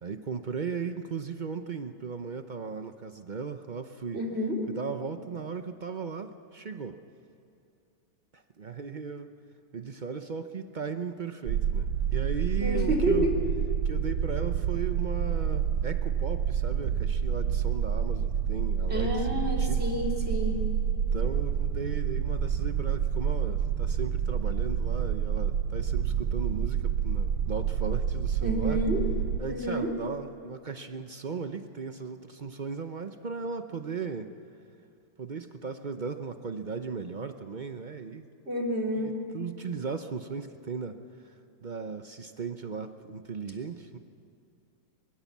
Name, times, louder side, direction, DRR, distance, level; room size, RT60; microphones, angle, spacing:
voice 1, 0.0-4.2 4.7-7.0 8.3-9.3 9.7-13.3 13.8-19.9 21.1-28.8 29.4-34.3 35.2-38.3 39.0-41.0 41.2-41.4 41.6-44.0, right 5 dB, 60° right, 8 dB, 0.4 m, -37 dB
voice 2, 4.1-4.6 12.6-13.3 18.9-20.6 28.4-29.0 29.5-29.9 38.5-39.1, equal, 35° right, -1 dB, 3.5 m, -29 dB
sound 1, 11.5-29.4, right 8 dB, 80° right, 1.4 m, -28 dB
23.0 x 23.0 x 7.3 m, 2.6 s
omnidirectional pair, 1.9 m